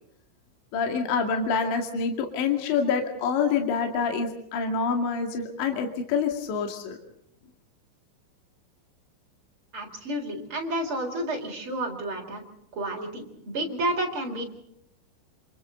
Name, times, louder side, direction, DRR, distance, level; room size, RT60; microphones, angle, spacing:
voice 1, 0.7-7.0, left 5 dB, 65° left, 3 dB, 4.4 m, -26 dB
voice 2, 9.7-12.4 12.8-14.4, right 1 dB, 30° right, 1 dB, 4.3 m, -30 dB
28.0 x 27.5 x 3.9 m, 0.77 s
omnidirectional pair, 5.8 m